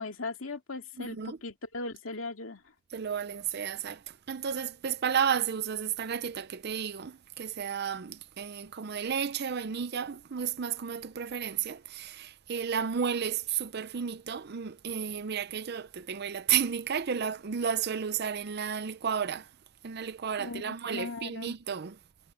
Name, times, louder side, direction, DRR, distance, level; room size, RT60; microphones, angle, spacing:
voice 1, 0.0-2.6 20.4-21.5, left 3 dB, 90° left, 2.3 m, -38 dB
voice 2, 1.0-1.4 2.9-19.5 19.8-22.0, right 7 dB, 55° right, 0.6 m, -32 dB
head